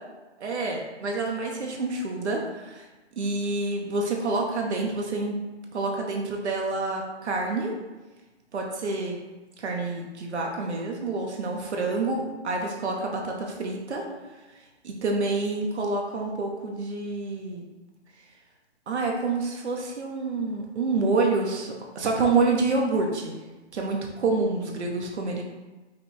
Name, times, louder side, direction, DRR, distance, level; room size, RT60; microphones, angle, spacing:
voice 1, 0.4-2.9 3.2-5.4 5.7-7.7 8.5-9.2 9.6-14.1 14.5-14.6 14.8-17.6 18.9-23.4 23.7-25.4, right 3 dB, 75° right, 0 dB, 0.9 m, -28 dB
5.2 x 2.2 x 4.1 m, 1.2 s
hypercardioid pair, 180°, 34 cm